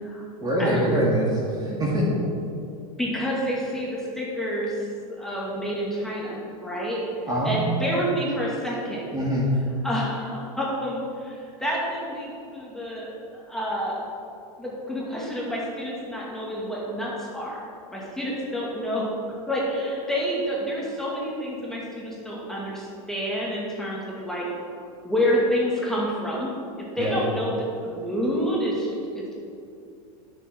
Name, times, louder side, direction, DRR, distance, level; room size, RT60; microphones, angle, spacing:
voice 1, 0.4-2.1 7.3-8.0 9.1-9.5 27.0-27.2, right 1 dB, 20° right, -4 dB, 2.0 m, -24 dB
voice 2, 3.0-4.9 5.2-7.0 7.4-9.0 9.8-14.0 14.6-19.0 19.5-24.5 25.0-26.5 27.0-29.3, equal, ahead, -6 dB, 2.2 m, -28 dB
12.0 x 6.6 x 4.5 m, 2.5 s
supercardioid pair, 120°, 20 cm